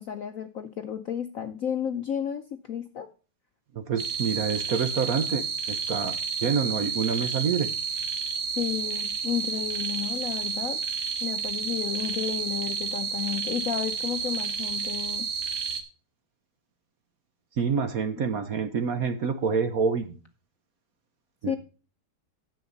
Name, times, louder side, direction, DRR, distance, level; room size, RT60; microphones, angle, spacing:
voice 1, 0.0-3.1 8.6-10.8 11.2-15.3 21.5-21.6, left 9 dB, 60° left, 8 dB, 0.9 m, -32 dB
voice 2, 3.7-7.7 17.6-20.2 21.4-21.6, right 6 dB, 55° right, 10 dB, 1.1 m, -27 dB
sound 1, 4.0-15.8, right 6 dB, 40° right, 1.3 m, -31 dB
10.5 x 7.8 x 4.0 m, 0.35 s
omnidirectional pair, 2.2 m